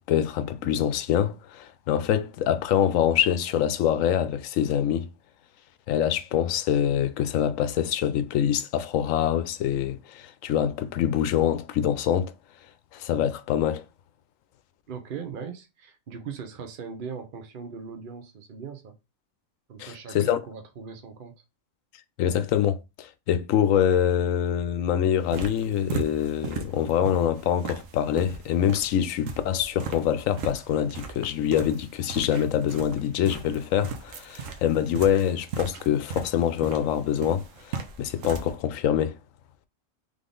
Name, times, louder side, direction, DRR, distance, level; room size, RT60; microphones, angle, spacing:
voice 1, 0.1-5.1 5.9-12.3 12.9-13.8 19.8-20.4 22.2-39.2, left 9 dB, 85° left, 1.0 m, -25 dB
voice 2, 14.9-18.9 19.7-21.3, right 6 dB, 50° right, 0.8 m, -39 dB
sound 1, 25.1-38.5, right 5 dB, 80° right, 1.1 m, -38 dB
3.6 x 3.5 x 3.8 m
omnidirectional pair, 1.3 m